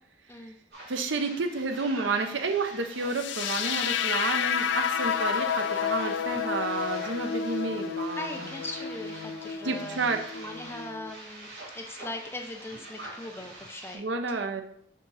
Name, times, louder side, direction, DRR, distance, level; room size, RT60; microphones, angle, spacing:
sound 1, 0.7-14.0, right 2 dB, 60° right, 2.8 m, -45 dB
voice 1, 0.9-8.3 9.6-10.2 13.9-14.6, right 3 dB, 75° right, 6 dB, 0.7 m, -30 dB
sound 2, 3.1-11.1, left 7 dB, 75° left, 0.4 m, -30 dB
voice 2, 8.2-11.5 11.7-14.6, left 1 dB, 10° left, 4 dB, 0.5 m, -40 dB
5.4 x 3.8 x 5.5 m, 0.67 s
head